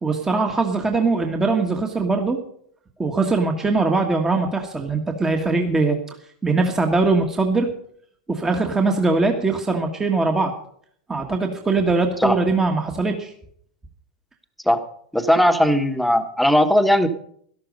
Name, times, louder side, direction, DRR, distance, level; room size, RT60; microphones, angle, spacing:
voice 1, 0.0-2.4 3.0-6.0 6.4-7.7 8.3-10.5 11.1-13.3, right 3 dB, 15° right, 3 dB, 1.5 m, -21 dB
voice 2, 15.1-17.1, equal, ahead, 7 dB, 1.4 m, -18 dB
13.0 x 12.5 x 5.3 m, 0.64 s
hypercardioid pair, 100°, 4 cm